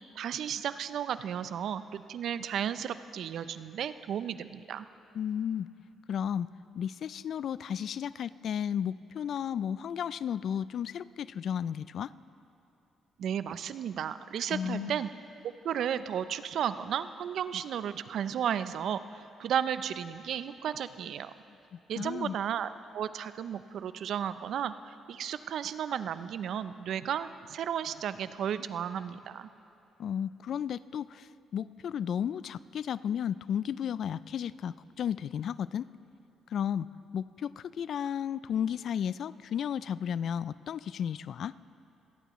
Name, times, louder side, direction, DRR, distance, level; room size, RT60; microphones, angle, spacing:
voice 1, 0.2-4.9 13.2-15.1 15.6-21.3 21.9-29.5, right 9 dB, 70° right, 13 dB, 0.5 m, -34 dB
voice 2, 5.1-5.7 6.1-6.5 6.7-12.1 14.5-15.0 21.7-22.4 30.0-35.9 36.5-36.9 37.1-41.6, left 8 dB, 65° left, 18 dB, 0.3 m, -33 dB
25.0 x 18.0 x 3.1 m, 2.7 s
supercardioid pair, 60°, 0 cm